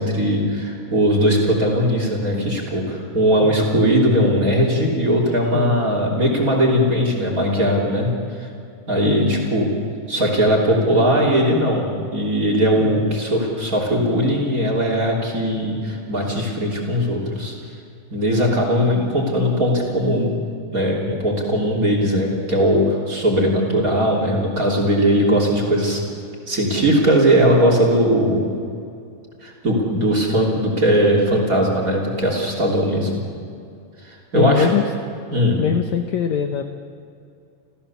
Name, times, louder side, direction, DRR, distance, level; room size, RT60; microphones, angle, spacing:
voice 1, 0.0-8.1 8.4-8.5 8.9-9.7 10.1-17.5 18.1-20.3 20.7-26.0 26.5-28.5 29.4-33.1 34.0-34.7 35.3-35.6, equal, 25° right, 0 dB, 3.2 m, -19 dB
voice 2, 3.4-3.8 5.5-5.9 9.0-9.4 12.8-13.1 34.3-34.8 35.6-36.7, left 9 dB, 70° left, 6 dB, 1.8 m, -23 dB
29.0 x 15.0 x 7.1 m, 2.4 s
omnidirectional pair, 4.2 m